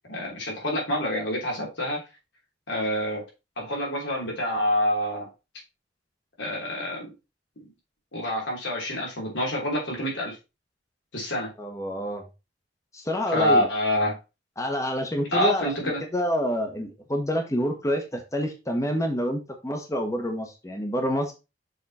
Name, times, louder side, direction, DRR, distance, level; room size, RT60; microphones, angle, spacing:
voice 1, 0.1-2.0 2.7-3.2 3.6-5.3 6.4-7.1 8.1-10.4 11.1-11.5 13.3-14.1 15.3-16.0, equal, 90° left, -2 dB, 3.2 m, -26 dB
voice 2, 11.6-12.2 12.9-13.7 14.6-21.3, equal, 15° left, 4 dB, 1.0 m, -28 dB
6.8 x 3.8 x 4.1 m, 0.28 s
head